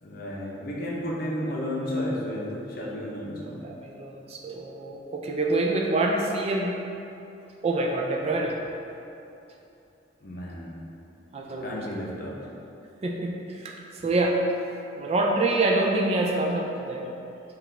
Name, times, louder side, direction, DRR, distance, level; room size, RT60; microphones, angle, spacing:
voice 1, 0.0-3.6 10.2-10.8 11.6-12.4, left 1 dB, 50° left, -4 dB, 0.7 m, -32 dB
voice 2, 3.6-6.8 7.6-8.6 11.3-11.8 13.0-14.4 15.0-17.1, right 2 dB, 35° right, -1 dB, 0.3 m, -26 dB
5.0 x 2.4 x 3.2 m, 2.8 s
head